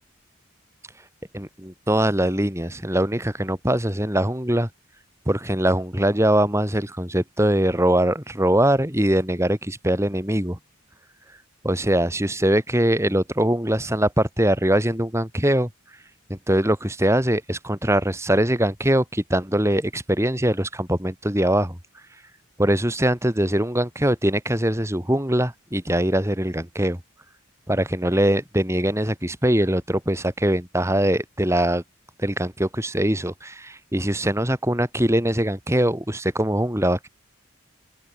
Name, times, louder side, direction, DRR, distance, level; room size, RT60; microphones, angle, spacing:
voice 1, 1.3-4.7 5.3-10.6 11.6-15.7 16.3-21.8 22.6-27.0 27.7-31.8 32.2-37.1, right 1 dB, 15° right, 4.0 m, -22 dB
open air
head